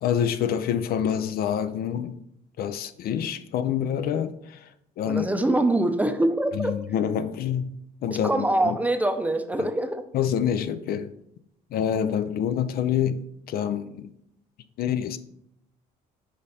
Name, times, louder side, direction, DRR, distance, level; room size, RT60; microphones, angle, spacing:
voice 1, 0.0-2.2 2.6-4.7 5.0-5.3 6.5-7.7 8.0-8.8 9.6-9.7 10.1-11.1 11.7-13.2 13.5-14.1 14.8-15.2, left 9 dB, 65° left, 0.5 m, -26 dB
voice 2, 5.1-6.7 8.1-10.0, right 1 dB, 10° right, 0.6 m, -24 dB
5.1 x 5.1 x 4.2 m
cardioid pair, 110°, 17 cm